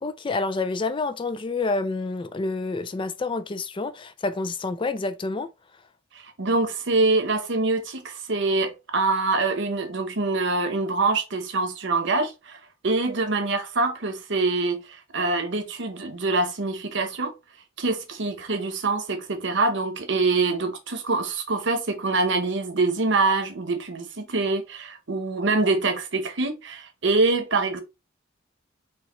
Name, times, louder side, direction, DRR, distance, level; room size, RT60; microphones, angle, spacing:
voice 1, 0.0-5.5, left 3 dB, 25° left, 0.3 m, -28 dB
voice 2, 6.2-17.3 17.8-27.8, right 3 dB, 65° right, 0.9 m, -25 dB
4.5 x 3.2 x 3.0 m
head